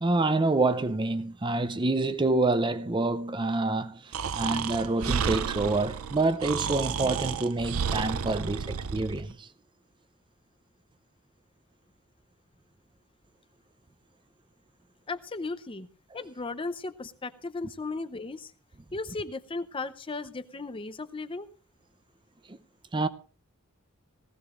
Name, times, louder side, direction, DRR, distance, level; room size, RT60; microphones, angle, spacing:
voice 1, 0.0-9.5 22.5-22.6 22.9-23.1, right 2 dB, 20° right, 0.5 m, -27 dB
Breathing, 4.1-9.2, right 6 dB, 70° right, 0.5 m, -31 dB
voice 2, 15.1-15.9 16.1-18.5 18.9-21.5, left 3 dB, 25° left, 0.6 m, -36 dB
19.0 x 15.5 x 2.5 m
head